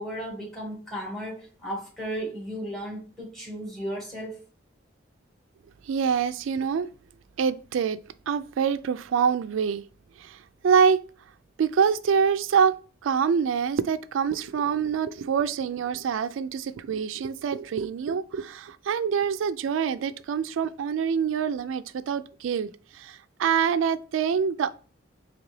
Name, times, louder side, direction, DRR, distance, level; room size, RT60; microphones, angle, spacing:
voice 1, 0.0-4.4, equal, ahead, 1.6 m, -35 dB
voice 2, 5.9-6.9 7.4-8.0 8.3-9.8 10.2-10.4 10.6-11.0 11.6-12.8 13.0-22.7 22.9-24.8, right 6 dB, 85° right, 0.3 m, -25 dB
4.0 x 2.9 x 3.1 m
head